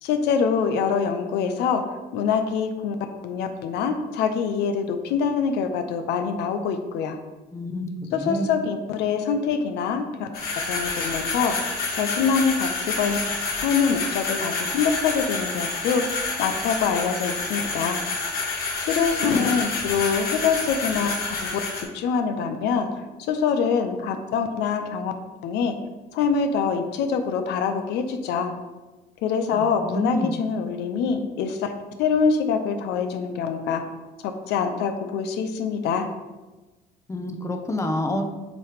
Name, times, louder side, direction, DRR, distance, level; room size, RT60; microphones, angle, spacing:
voice 1, 0.0-1.8 2.1-7.2 8.1-11.6 11.9-16.0 16.4-18.0 18.8-22.9 23.3-25.1 25.4-25.8 26.1-28.5 29.2-31.7 32.0-33.8 34.2-36.1, left 6 dB, 85° left, 7 dB, 0.7 m, -25 dB
voice 2, 7.5-8.5 29.5-30.4 37.1-38.2, left 1 dB, 15° left, 5 dB, 0.7 m, -28 dB
sound 1, 10.3-21.8, left 3 dB, 60° left, 2.0 m, -28 dB
7.6 x 3.2 x 5.0 m, 1.2 s
cardioid pair, 110°, 17 cm